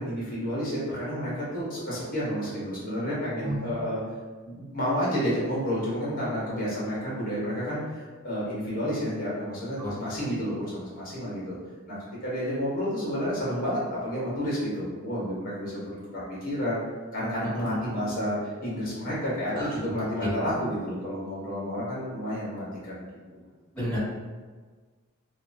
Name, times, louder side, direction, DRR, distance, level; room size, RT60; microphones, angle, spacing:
voice 1, 0.0-4.0 4.4-11.6 11.9-16.8 17.1-18.4 18.6-23.0, equal, 40° left, -7 dB, 1.0 m, -30 dB
voice 2, 3.4-3.6 9.8-9.9 17.6-17.7 19.5-19.6 20.2-20.3 23.7-24.0, equal, 5° left, -14 dB, 1.5 m, -30 dB
2.8 x 2.3 x 2.6 m, 1.4 s
head